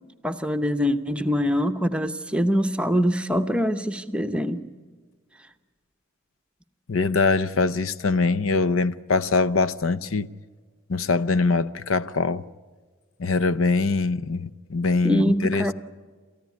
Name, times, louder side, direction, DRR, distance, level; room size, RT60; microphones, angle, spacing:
voice 1, 0.2-4.6 15.0-15.7, equal, 5° right, 0.8 m, -24 dB
voice 2, 6.9-10.3 10.9-12.4 13.2-15.7, left 3 dB, 85° left, 0.7 m, -23 dB
28.5 x 14.5 x 9.4 m
head